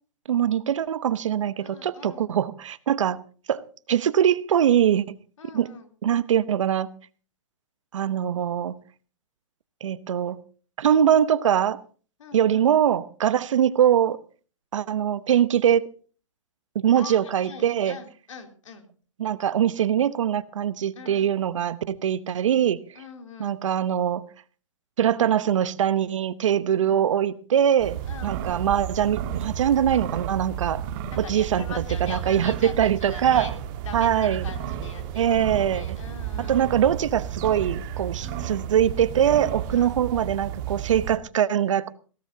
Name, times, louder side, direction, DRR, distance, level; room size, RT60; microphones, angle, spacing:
voice 1, 0.3-3.2 3.5-5.2 5.5-5.7 6.0-6.9 7.9-8.8 9.8-10.4 10.8-11.8 12.3-14.2 14.7-15.9 16.7-18.0 19.2-22.8 23.4-24.2 25.0-30.8 31.2-31.6 32.0-33.5 33.9-34.4 35.2-35.8 36.5-41.9, right 9 dB, 70° right, 1.0 m, -22 dB
voice 2, 1.6-2.3 5.4-5.9 12.2-12.7 16.9-18.9 20.9-21.3 22.9-23.6 26.7-27.1 28.1-28.4 31.1-33.5 33.8-36.7 38.2-38.5 39.7-40.0, left 5 dB, 75° left, 3.5 m, -42 dB
sound 1, 27.8-41.2, right 9 dB, 40° right, 1.7 m, -32 dB
21.5 x 17.0 x 2.8 m
hypercardioid pair, 135°, 17 cm